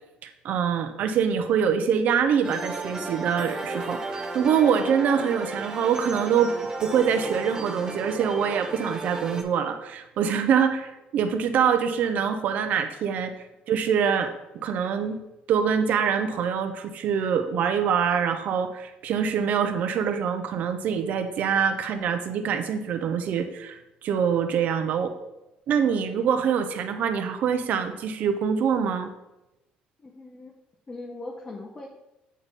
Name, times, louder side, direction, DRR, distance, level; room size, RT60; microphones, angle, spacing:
voice 1, 0.2-6.5 6.8-13.3 13.7-15.2 15.5-25.1 25.7-29.1, right 7 dB, 55° right, 8 dB, 0.6 m, -25 dB
sound 1, 2.4-9.4, right 2 dB, 25° right, 0.7 m, -34 dB
voice 2, 30.0-30.5 30.9-31.9, left 2 dB, 20° left, 0 dB, 0.7 m, -39 dB
8.5 x 4.1 x 3.5 m, 0.95 s
cardioid pair, 145°, 3 cm